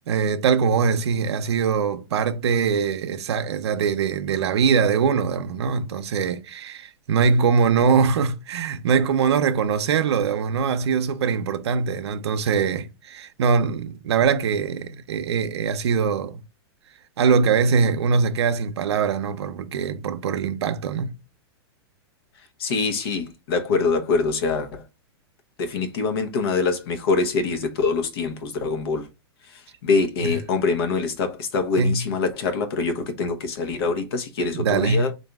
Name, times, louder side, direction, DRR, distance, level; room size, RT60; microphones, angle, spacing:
voice 1, 0.0-16.4 17.2-21.2 30.2-30.3 31.8-32.0 34.5-35.1, right 6 dB, 85° right, 0.6 m, -22 dB
voice 2, 22.6-24.8 25.6-29.1 29.4-35.1, left 4 dB, 65° left, 0.9 m, -24 dB
4.0 x 2.6 x 3.4 m
supercardioid pair, 150°, 14 cm